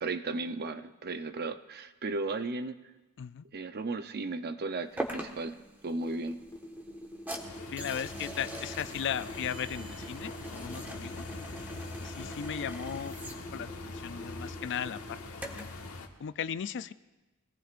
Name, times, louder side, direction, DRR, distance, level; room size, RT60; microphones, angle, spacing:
voice 1, 0.0-2.8 3.5-5.6 5.8-6.4, right 3 dB, 45° right, 10 dB, 0.7 m, -35 dB
sound 1, 5.0-15.8, right 1 dB, 10° right, 1.4 m, -44 dB
sound 2, 5.9-15.2, left 1 dB, 15° left, 2.0 m, -45 dB
sound 3, 7.4-16.1, left 2 dB, 70° left, 1.4 m, -43 dB
voice 2, 7.7-11.2 12.0-15.2 15.5-15.7 16.2-16.9, left 8 dB, 55° left, 14 dB, 0.4 m, -37 dB
24.5 x 18.0 x 2.5 m, 1.1 s
head